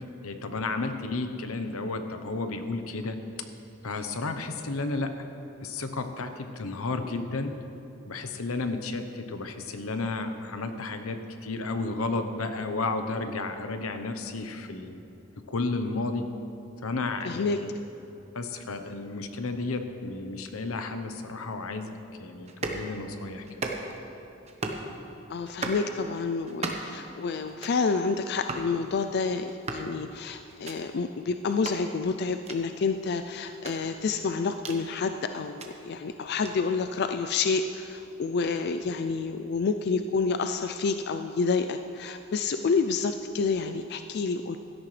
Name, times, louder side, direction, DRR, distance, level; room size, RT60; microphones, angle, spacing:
voice 1, 0.2-3.2 3.8-5.1 5.6-7.5 8.1-15.0 15.5-16.3 16.8-17.7 18.3-23.7, left 3 dB, 85° left, 7 dB, 0.9 m, -32 dB
voice 2, 17.2-17.6 25.3-44.6, left 4 dB, 50° left, 8 dB, 0.4 m, -29 dB
sound 1, 22.5-22.8 23.4-24.0 24.4-24.9 25.4-25.8 26.4-27.0 27.4-27.8 28.4-28.7 29.4-29.9 30.5-30.8 31.5-31.8 32.4-32.6 33.5-34.8 35.4-35.7 36.4-36.5, right 3 dB, 30° right, 1.0 m, -36 dB
16.5 x 12.5 x 3.3 m, 2.9 s
head